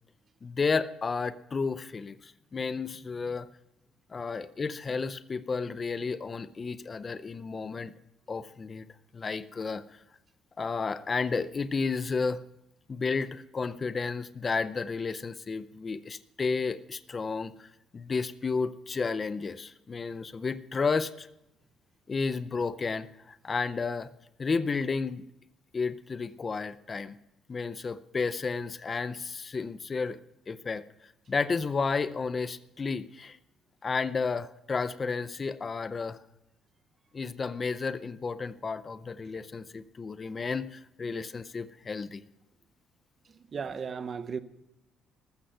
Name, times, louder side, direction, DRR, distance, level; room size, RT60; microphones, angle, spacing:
voice 1, 0.4-3.5 4.1-7.9 8.3-8.9 9.1-10.0 10.6-12.4 12.9-17.7 17.9-21.3 22.1-24.1 24.4-25.2 25.7-27.2 27.5-30.2 30.5-30.8 31.3-33.4 33.8-36.2 37.1-42.2, left 4 dB, 20° left, 0.5 m, -32 dB
voice 2, 43.5-44.4, right 6 dB, 30° right, 0.8 m, -35 dB
14.0 x 13.0 x 5.6 m
cardioid pair, 180°, 0 cm